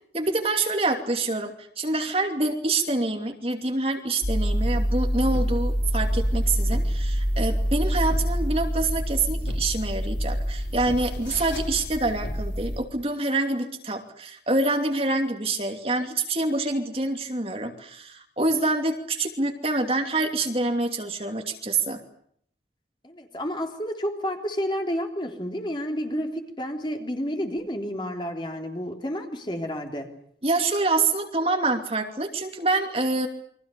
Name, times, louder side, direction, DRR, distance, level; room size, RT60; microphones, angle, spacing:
voice 1, 0.1-22.0 30.4-33.3, right 2 dB, 35° right, 4 dB, 2.8 m, -26 dB
sound 1, 4.2-12.8, equal, 85° left, 5.9 m, -26 dB
voice 2, 23.0-30.1, equal, 25° left, 3 dB, 3.6 m, -30 dB
29.0 x 24.0 x 6.9 m, 0.65 s
head